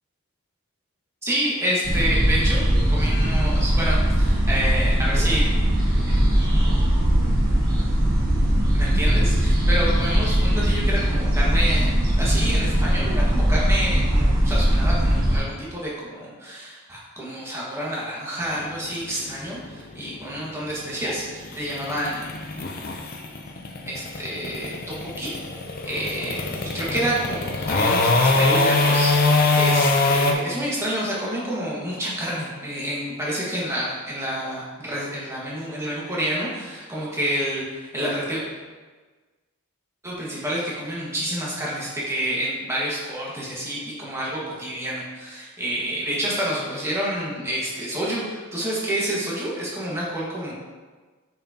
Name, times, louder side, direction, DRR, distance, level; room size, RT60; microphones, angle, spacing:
voice 1, 1.2-5.5 8.7-22.4 23.8-25.5 25.8-38.4 40.0-50.5, equal, 10° right, -6 dB, 1.6 m, -28 dB
sound 1, 1.8-15.4, equal, 40° right, 1.5 m, -20 dB
sound 2, 18.4-30.3, left 3 dB, 40° left, 0.6 m, -23 dB
7.1 x 5.9 x 2.9 m, 1.3 s
head